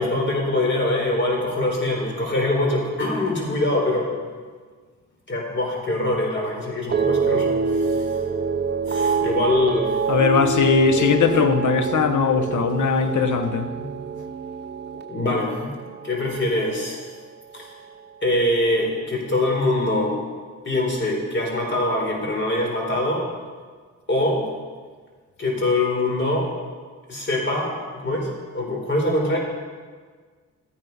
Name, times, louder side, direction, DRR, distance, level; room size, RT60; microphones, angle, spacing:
voice 1, 0.0-4.1 5.3-8.1 8.9-10.0 13.8-13.9 15.1-15.7 16.0-17.0 17.5-17.7 18.2-20.2 20.6-23.3 24.1-24.5 25.4-26.5 27.1-29.4, left 1 dB, 40° left, 3.9 m, -23 dB
sound 1, 6.9-17.3 17.6-18.1, right 5 dB, 35° right, 0.7 m, -26 dB
voice 2, 10.1-13.7, left 6 dB, 75° left, 1.1 m, -20 dB
14.0 x 9.5 x 5.4 m
cardioid pair, 65°, 30 cm